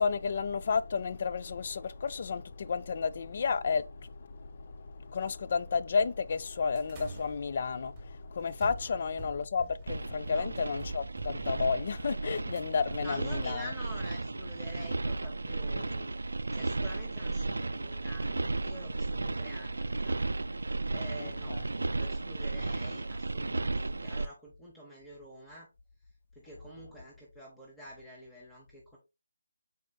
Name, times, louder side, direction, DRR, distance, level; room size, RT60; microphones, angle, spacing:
voice 1, 0.0-13.7 21.2-21.6, left 5 dB, 45° left, 0.3 m, -32 dB
sound 1, 6.8-15.1, right 3 dB, 15° right, 1.3 m, -47 dB
sound 2, 9.9-24.3, right 2 dB, 80° right, 0.3 m, -34 dB
voice 2, 13.0-16.1 16.5-21.6 21.9-25.7 26.3-29.0, equal, 5° left, 0.8 m, -48 dB
4.9 x 4.0 x 2.2 m
figure-of-eight pair, 165°, 0 cm